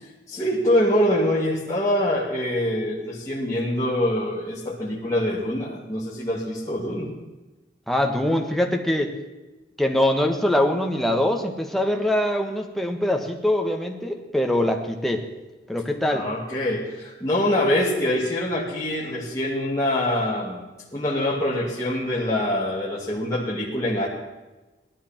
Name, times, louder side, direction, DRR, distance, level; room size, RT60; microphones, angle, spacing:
voice 1, 0.3-7.1 16.1-20.7 20.9-24.1, left 1 dB, 20° left, -8 dB, 2.5 m, -24 dB
voice 2, 7.9-9.1 9.8-15.3 15.7-16.3, left 1 dB, ahead, 2 dB, 1.3 m, -23 dB
18.5 x 13.0 x 4.4 m, 1.2 s
head